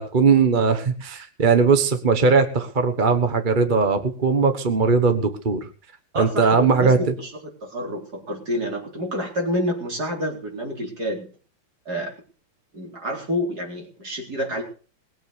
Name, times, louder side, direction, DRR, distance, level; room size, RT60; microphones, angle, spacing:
voice 1, 0.0-5.7 6.2-7.0, right 5 dB, 30° right, 8 dB, 1.1 m, -19 dB
voice 2, 6.1-11.3 11.8-12.1 12.7-14.6, equal, 50° right, 0 dB, 4.8 m, -28 dB
20.5 x 7.7 x 6.7 m, 0.40 s
omnidirectional pair, 2.2 m